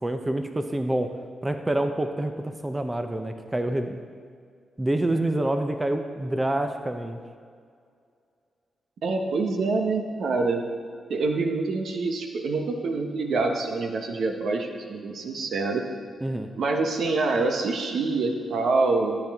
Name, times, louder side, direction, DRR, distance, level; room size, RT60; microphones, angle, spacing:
voice 1, 0.0-1.1 1.4-4.1 4.8-7.2 16.2-16.5, right 1 dB, 20° right, 7 dB, 0.7 m, -27 dB
voice 2, 9.0-10.6 11.1-15.8 16.6-19.2, right 3 dB, 75° right, 4 dB, 0.9 m, -26 dB
13.0 x 7.2 x 3.5 m, 2.1 s
supercardioid pair, 55°, 0 cm